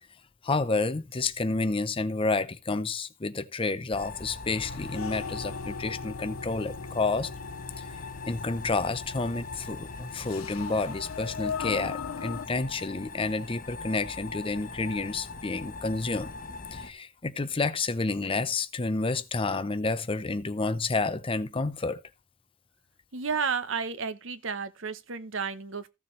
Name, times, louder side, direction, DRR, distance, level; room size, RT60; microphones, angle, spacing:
voice 1, 0.4-7.3 7.8-7.9 8.2-16.3 16.7-22.0, left 3 dB, 25° left, 0.6 m, -30 dB
sound 1, 3.9-16.9, left 3 dB, 40° left, 1.3 m, -42 dB
sound 2, 4.4-12.5, left 5 dB, 90° left, 0.6 m, -39 dB
voice 2, 23.1-25.9, right 5 dB, 65° right, 0.8 m, -32 dB
15.0 x 7.0 x 3.2 m
head